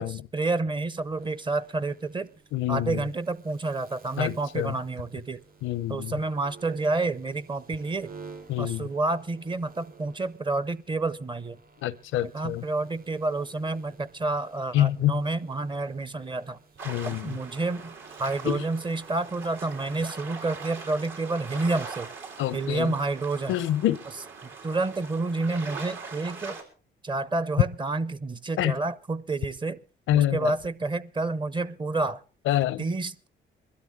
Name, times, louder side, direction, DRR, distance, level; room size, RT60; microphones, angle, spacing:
voice 1, 0.0-2.3 2.7-5.4 5.9-8.1 8.6-11.6 12.2-16.6 17.0-17.9 18.2-22.1 22.5-23.6 24.4-26.6 27.0-29.8 30.1-32.2 32.8-33.3, right 3 dB, 25° right, 0.7 m, -29 dB
sound 1, 1.0-19.9, right 4 dB, 50° right, 7.7 m, -53 dB
voice 2, 2.5-3.0 4.2-4.7 5.6-6.1 8.5-8.9 11.8-12.6 14.7-15.2 16.9-17.4 18.5-18.6 22.4-22.9 23.5-24.0 28.6-28.7 30.1-30.5 32.5-32.8, left 13 dB, 85° left, 0.6 m, -26 dB
sound 2, 16.8-26.6, right 4 dB, 75° right, 3.8 m, -41 dB
22.0 x 12.5 x 3.6 m
cardioid pair, 90°, 20 cm